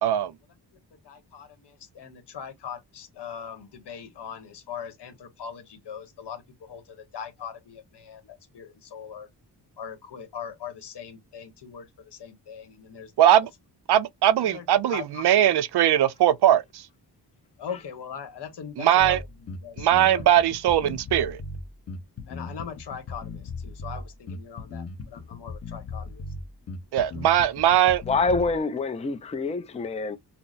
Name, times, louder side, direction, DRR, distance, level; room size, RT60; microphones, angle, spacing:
voice 1, 0.0-0.3 13.2-13.5 13.9-16.9 18.8-19.2 19.8-21.4 26.9-28.0, right 11 dB, 75° right, 0.5 m, -20 dB
voice 2, 1.0-9.3 9.8-13.1 14.4-15.2 17.6-19.3 19.6-20.2 22.3-26.2, left 7 dB, 80° left, 1.2 m, -40 dB
Bass guitar, 19.0-28.6, left 3 dB, 40° left, 0.7 m, -38 dB
voice 3, 28.1-30.2, left 3 dB, 15° left, 0.4 m, -26 dB
5.7 x 2.0 x 2.4 m
wide cardioid pair, 155°, 40 cm